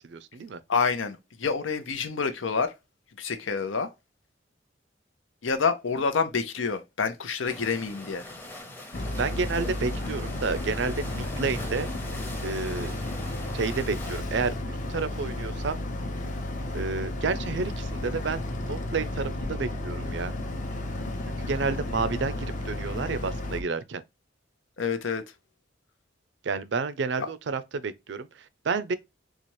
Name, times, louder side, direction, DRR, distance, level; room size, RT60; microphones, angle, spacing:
voice 1, 0.0-0.6 9.2-11.9 12.4-12.9 13.5-15.8 16.7-20.3 21.4-24.0 26.4-29.0, right 4 dB, 65° right, 0.4 m, -30 dB
voice 2, 0.7-2.7 3.2-3.9 5.4-8.3 24.8-25.2 27.2-27.3, left 5 dB, 90° left, 0.7 m, -28 dB
sound 1, 7.4-14.2, left 1 dB, 10° left, 0.8 m, -42 dB
Boat Water vehicle, 8.9-23.6, left 1 dB, 40° left, 0.8 m, -33 dB
4.1 x 2.4 x 3.0 m
head